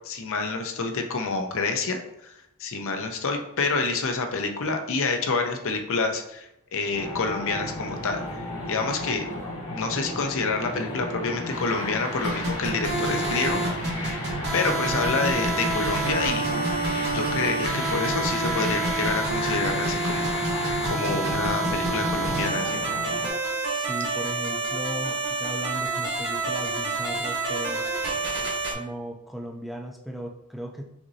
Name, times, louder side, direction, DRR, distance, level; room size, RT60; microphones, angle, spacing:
voice 1, 0.0-2.3 2.6-9.3 9.7-13.6 14.5-16.5 17.1-20.3 20.8-22.8, left 4 dB, 60° left, 4 dB, 0.6 m, -28 dB
sound 1, 6.9-23.3, left 1 dB, 80° left, 1.6 m, -33 dB
sound 2, 12.2-28.7, right 3 dB, 50° right, 1.2 m, -28 dB
voice 2, 23.5-27.8 28.7-30.9, right 1 dB, ahead, 0 dB, 0.4 m, -37 dB
5.9 x 2.6 x 2.7 m, 0.83 s
head